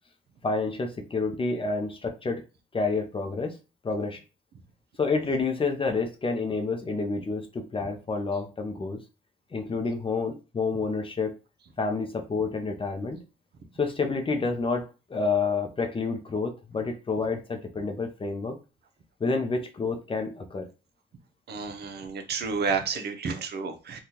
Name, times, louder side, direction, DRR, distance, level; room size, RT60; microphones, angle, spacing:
voice 1, 0.4-2.4 2.7-3.5 3.8-4.2 5.0-9.0 9.5-11.4 11.8-13.2 13.8-18.6 19.2-20.7, left 4 dB, 25° left, 5 dB, 0.6 m, -29 dB
voice 2, 21.5-24.0, right 5 dB, 55° right, 6 dB, 0.7 m, -31 dB
3.5 x 2.3 x 2.8 m, 0.31 s
cardioid pair, 90°, 20 cm